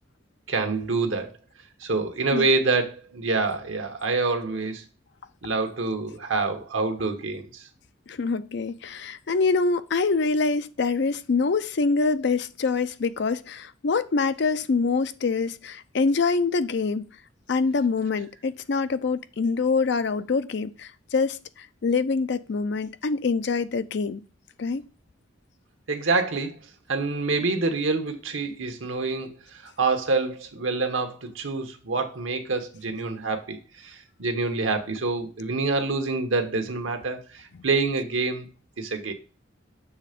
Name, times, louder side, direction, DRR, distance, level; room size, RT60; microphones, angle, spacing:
voice 1, 0.5-1.3 1.8-4.8 5.4-7.6 25.9-26.6 26.9-38.5 38.8-39.1, right 3 dB, 85° right, 1.2 m, -26 dB
voice 2, 8.1-17.1 17.5-24.2 24.6-24.8 37.5-37.6, left 4 dB, 60° left, 0.5 m, -25 dB
7.1 x 3.3 x 5.1 m
head